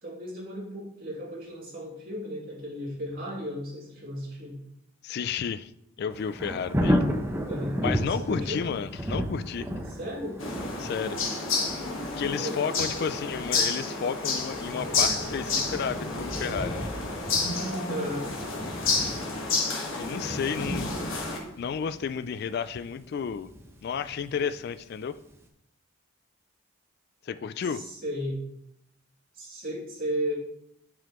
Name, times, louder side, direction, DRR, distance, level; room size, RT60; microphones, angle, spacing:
voice 1, 0.0-4.6 7.4-7.8 8.1-8.6 9.9-10.4 12.2-12.6 14.6-14.8 17.9-18.3 27.7-28.4 29.3-30.3, equal, 45° right, -5 dB, 2.9 m, -35 dB
voice 2, 5.0-5.7 6.0-7.0 7.8-9.7 10.8-11.2 12.2-16.9 20.0-21.0 21.6-23.5 23.8-25.2 27.2-27.8, left 6 dB, 50° left, 13 dB, 0.3 m, -32 dB
Thunder, 6.1-24.9 25.3-25.4, equal, 10° right, 0.8 m, -34 dB
sound 1, 10.4-21.4, left 3 dB, 70° left, 1.5 m, -30 dB
9.5 x 6.2 x 3.0 m, 0.77 s
head